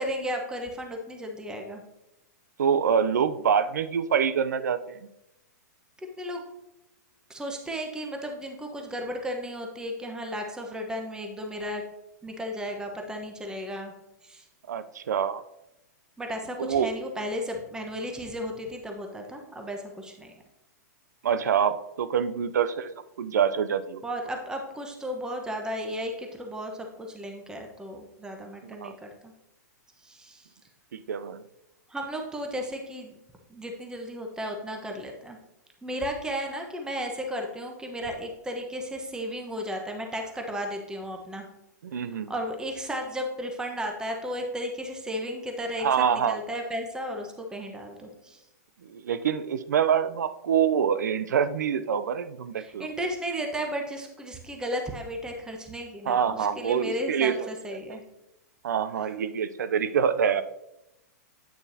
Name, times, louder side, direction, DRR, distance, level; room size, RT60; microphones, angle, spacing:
voice 1, 0.0-1.8 6.2-6.4 7.3-11.8 12.2-13.9 14.2-14.5 16.2-20.3 24.0-29.3 30.0-30.5 31.9-33.2 33.5-35.4 35.8-41.4 42.0-48.4 52.6-58.0 59.0-59.2, equal, 10° right, 3 dB, 1.0 m, -34 dB
voice 2, 2.6-5.0 14.7-15.4 16.6-16.9 21.2-22.9 23.2-24.0 28.6-29.0 30.9-31.4 41.8-42.3 45.8-46.4 48.8-52.9 56.1-57.5 57.9-58.0 58.6-60.4, right 7 dB, 80° right, 13 dB, 0.5 m, -26 dB
8.7 x 6.7 x 2.8 m, 0.89 s
hypercardioid pair, 115°, 9 cm